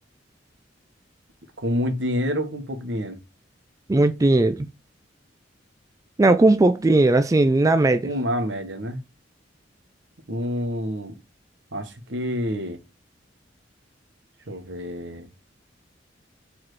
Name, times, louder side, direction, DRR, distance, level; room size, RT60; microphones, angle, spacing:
voice 1, 1.6-3.2 8.0-9.0 10.3-11.2 11.7-12.8 14.5-15.3, equal, 75° right, 1.2 m, -28 dB
voice 2, 3.9-4.7 6.2-8.1, right 2 dB, 20° right, 0.3 m, -18 dB
4.8 x 4.3 x 4.6 m
head